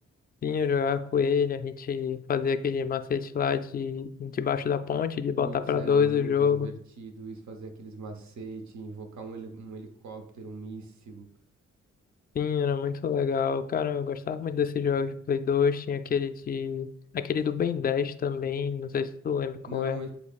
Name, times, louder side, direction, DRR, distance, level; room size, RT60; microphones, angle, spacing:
voice 1, 0.4-6.7 12.4-16.9 17.1-20.0, left 6 dB, 30° left, 10 dB, 0.4 m, -27 dB
voice 2, 5.4-11.3 19.6-20.1, right 3 dB, 70° right, 5 dB, 0.9 m, -40 dB
8.2 x 2.8 x 2.4 m, 0.65 s
cardioid pair, 55°, 30 cm